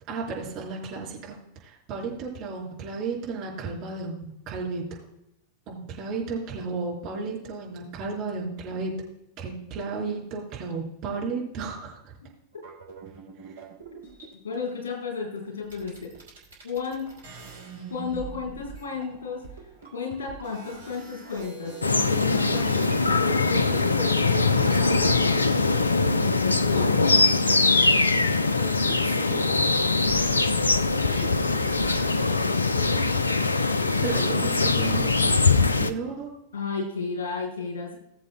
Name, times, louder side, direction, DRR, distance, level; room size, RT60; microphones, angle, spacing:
voice 1, 0.1-5.0 5.7-8.9 9.4-12.2 13.4-13.6 28.9-29.7 31.1-31.3 34.0-36.3, right 4 dB, 40° right, -3 dB, 4.3 m, -34 dB
sound 1, 12.5-14.5 15.4-15.5 15.6-26.3 26.6-29.2 29.5-32.2, right 4 dB, 70° right, 3.0 m, -45 dB
voice 2, 14.4-16.1 16.6-17.1 17.9-19.4 19.9-27.1 31.2-31.4 36.5-38.0, left 4 dB, 65° left, 0 dB, 4.4 m, -33 dB
sound 2, 21.8-35.9, left 3 dB, 80° left, 0.5 m, -22 dB
sound 3, 22.4-36.1, left 1 dB, 45° left, 3.6 m, -43 dB
20.0 x 7.5 x 2.3 m, 0.79 s
figure-of-eight pair, 90°, 0 cm